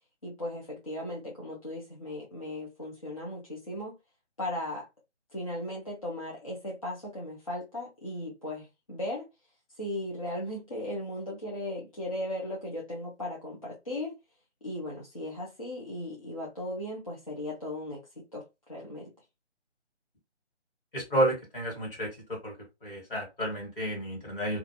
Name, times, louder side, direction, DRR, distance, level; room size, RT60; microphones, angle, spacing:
voice 1, 0.2-3.9 4.4-4.9 5.3-9.3 9.8-14.1 14.6-18.4 18.7-19.1, left 1 dB, 30° left, 0.5 m, -37 dB
voice 2, 20.9-22.1 22.4-22.5 22.8-24.6, right 1 dB, 50° left, 1.5 m, -30 dB
2.4 x 2.3 x 2.6 m
figure-of-eight pair, 150°, 35 cm